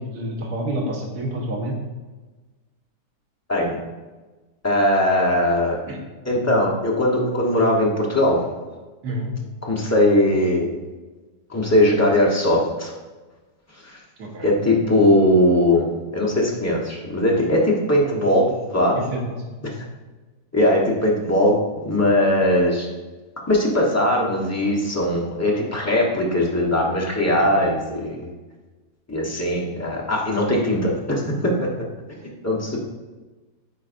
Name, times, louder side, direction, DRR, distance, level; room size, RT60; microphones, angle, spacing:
voice 1, 0.0-1.7 5.4-5.5 5.9-6.0 9.0-9.3 14.2-14.5 19.1-19.6, right 1 dB, 70° right, -1 dB, 1.6 m, -28 dB
voice 2, 4.6-5.8 6.3-8.4 9.6-10.8 11.5-12.9 13.8-14.0 14.4-19.0 20.5-22.9 23.5-28.3 29.1-31.8 32.2-32.8, left 1 dB, 15° left, -3 dB, 0.7 m, -20 dB
9.4 x 4.0 x 2.5 m, 1.2 s
omnidirectional pair, 1.8 m